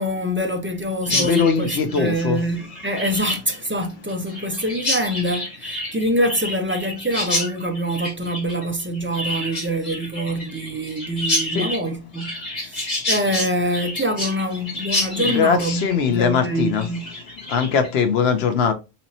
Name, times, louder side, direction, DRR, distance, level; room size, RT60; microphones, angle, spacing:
voice 1, 0.0-12.4 12.6-15.8 16.1-17.1, equal, 20° right, 0.4 m, -25 dB
Chirp tweet, 1.0-17.9, left 1 dB, 40° left, 1.8 m, -29 dB
voice 2, 1.1-2.4 11.5-11.7 15.2-16.9 17.5-18.7, left 6 dB, 80° left, 1.0 m, -21 dB
4.2 x 2.9 x 2.7 m
omnidirectional pair, 1.0 m